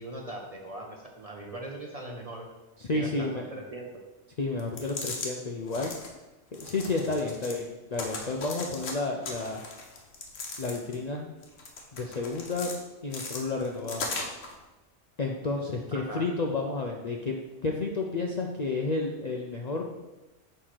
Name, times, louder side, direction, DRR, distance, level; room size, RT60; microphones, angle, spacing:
voice 1, 0.0-2.5 2.9-3.9 15.9-16.2, right 2 dB, 40° right, 0 dB, 0.6 m, -40 dB
voice 2, 2.8-3.4 4.4-5.9 6.5-9.6 10.6-11.3 11.9-12.7 13.0-14.1 15.2-19.9, left 3 dB, 50° left, 0 dB, 0.5 m, -31 dB
sound 1, 4.6-5.3 5.7-6.1 6.5-7.6 7.9-8.9 9.2-11.0 11.4-12.8 13.1-14.5, left 3 dB, 80° left, 1.3 m, -38 dB
6.6 x 3.2 x 5.7 m, 1.1 s
omnidirectional pair, 1.3 m